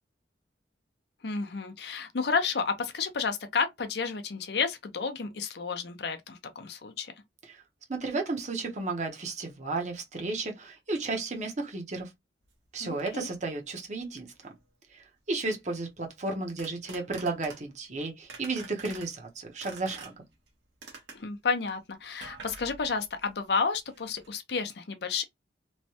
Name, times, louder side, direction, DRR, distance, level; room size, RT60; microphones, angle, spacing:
voice 1, 1.2-7.1 12.8-13.3 21.1-25.2, left 5 dB, 65° left, 0.6 m, -31 dB
voice 2, 7.9-12.1 12.7-14.3 14.9-20.1, right 3 dB, 40° right, 0.8 m, -33 dB
sound 1, 12.4-12.5 13.0-13.3 14.3-14.7 16.2-17.9 18.3-19.1 19.6-20.5 20.8-21.4 22.2-23.5 23.8-24.3, right 4 dB, 85° right, 1.1 m, -47 dB
3.1 x 2.1 x 2.8 m
head